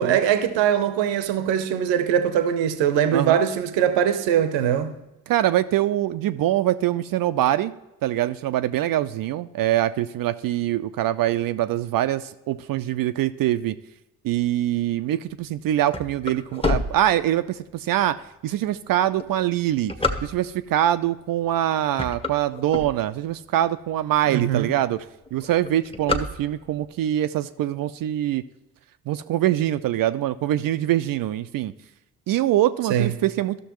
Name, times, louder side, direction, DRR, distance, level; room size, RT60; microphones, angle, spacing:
voice 1, 0.0-4.9 24.3-24.7 32.9-33.1, right 9 dB, 70° right, 0.8 m, -21 dB
voice 2, 5.3-7.7 8.0-13.8 14.2-19.9 20.2-25.0 25.3-28.4 29.1-31.7 32.3-33.6, right 13 dB, 50° right, 0.4 m, -24 dB
sound 1, 15.4-17.7 18.3-18.4 19.0-20.7 21.4-21.6 21.9-23.4 23.9-24.0 24.2-24.3 24.6-25.0 25.3-26.9, left 3 dB, 10° left, 0.9 m, -28 dB
13.0 x 6.4 x 3.0 m
hypercardioid pair, 45°, 46 cm